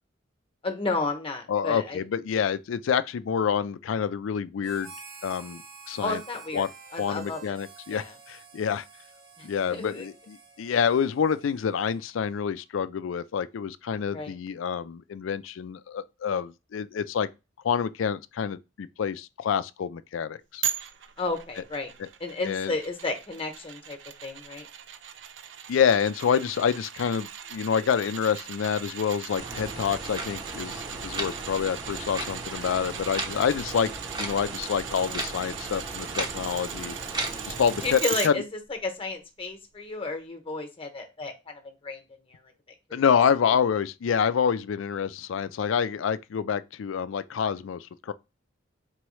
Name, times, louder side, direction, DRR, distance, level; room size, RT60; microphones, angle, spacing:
voice 1, 0.6-2.0 6.0-6.7 6.9-7.6 7.9-8.1 9.4-10.1 14.1-14.3 21.2-21.9 22.2-24.7 37.8-38.4 38.8-42.0 42.3-42.4 42.9-43.0, left 3 dB, 30° left, 0.9 m, -32 dB
voice 2, 1.5-4.9 5.2-5.6 5.9-6.2 6.5-6.7 7.0-8.8 9.4-17.3 17.6-20.6 22.0-22.1 22.4-22.7 25.7-33.9 34.2-37.0 37.4-38.3 42.9-48.1, left 7 dB, 90° left, 0.4 m, -27 dB
Harmonica, 4.6-12.4, right 5 dB, 90° right, 1.8 m, -49 dB
sound 1, 20.6-38.3 38.7-38.8, right 9 dB, 65° right, 0.5 m, -38 dB
sound 2, 29.4-38.0, right 2 dB, 25° right, 0.7 m, -36 dB
4.5 x 3.0 x 3.1 m
head